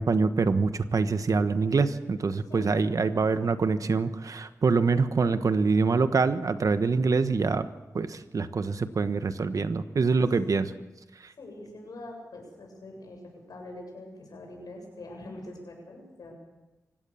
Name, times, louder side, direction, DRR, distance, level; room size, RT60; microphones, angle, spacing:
voice 1, 0.0-7.7 7.9-10.7 11.2-11.3, right 4 dB, 65° right, 11 dB, 1.2 m, -25 dB
voice 2, 2.5-2.8 11.4-16.3, left 1 dB, 85° left, 1 dB, 7.4 m, -44 dB
25.5 x 16.5 x 7.1 m, 1.1 s
wide cardioid pair, 75°, 6 cm